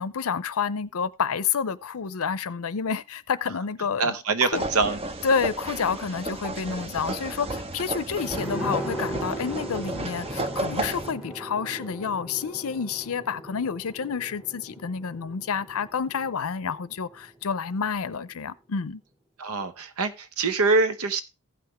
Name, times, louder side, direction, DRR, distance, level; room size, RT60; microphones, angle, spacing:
voice 1, 0.0-4.2 4.4-4.7 5.2-19.0, left 6 dB, 70° left, 0.6 m, -29 dB
voice 2, 4.0-5.0 19.4-21.2, right 3 dB, 70° right, 1.0 m, -24 dB
sound 1, 4.5-11.1, right 1 dB, 25° right, 0.7 m, -33 dB
sound 2, 8.1-17.4 17.7-17.8, right 1 dB, ahead, 1.1 m, -38 dB
16.0 x 5.8 x 3.1 m
head